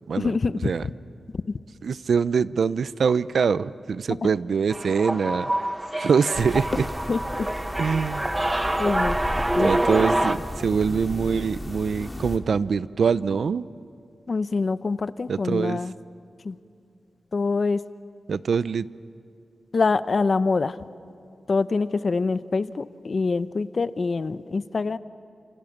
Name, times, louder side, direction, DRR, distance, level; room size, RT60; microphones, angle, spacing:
voice 1, 0.2-0.7 1.5-1.6 7.1-7.5 8.8-9.2 9.6-9.7 14.3-15.9 16.4-16.6 17.3-17.8 19.7-20.8 21.5-25.0, left 4 dB, 45° left, 15 dB, 0.7 m, -25 dB
voice 2, 1.8-5.7 6.0-6.9 7.8-8.2 9.6-13.7 15.3-15.8 18.3-18.9, right 6 dB, 75° right, 17 dB, 0.5 m, -24 dB
sound 1, 4.7-10.4, right 1 dB, 15° right, 0.9 m, -26 dB
sound 2, 6.3-12.4, left 1 dB, 15° left, 2.0 m, -35 dB
28.5 x 27.5 x 7.3 m, 2.5 s
wide cardioid pair, 120°, 0 cm